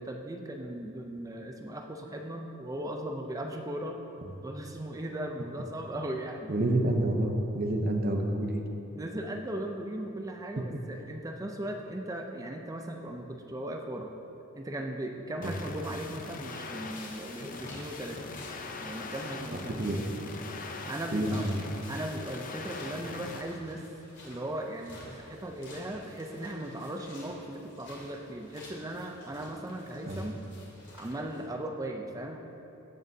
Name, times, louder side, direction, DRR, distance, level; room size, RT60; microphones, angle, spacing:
voice 1, 0.0-4.0 4.4-6.5 8.9-14.1 14.5-18.2 18.8-20.0 20.9-21.5 21.9-23.8 24.2-30.4 31.0-32.4, right 1 dB, 15° right, 3 dB, 0.4 m, -38 dB
voice 2, 6.5-8.7 10.7-10.8 15.4-15.5 19.5-20.0 21.1-21.5 30.1-30.2, right 1 dB, 45° right, 3 dB, 0.7 m, -28 dB
sound 1, 15.4-23.4, left 3 dB, 40° left, 0.6 m, -42 dB
sound 2, 16.7-31.5, left 1 dB, 55° left, 2.3 m, -51 dB
15.0 x 7.6 x 2.7 m, 2.9 s
head